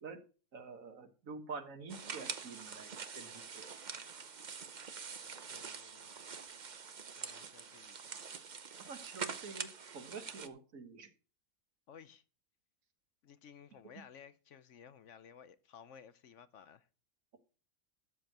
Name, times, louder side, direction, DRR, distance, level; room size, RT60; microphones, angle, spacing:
voice 1, 0.5-3.7 8.8-11.1, right 4 dB, 70° right, 1.8 m, -48 dB
sound 1, 1.9-10.5, right 6 dB, 40° right, 0.8 m, -45 dB
voice 2, 5.5-6.1 7.0-8.0 11.9-12.2 13.2-16.9, left 8 dB, 65° left, 1.0 m, -56 dB
13.0 x 4.4 x 7.9 m
omnidirectional pair, 1.4 m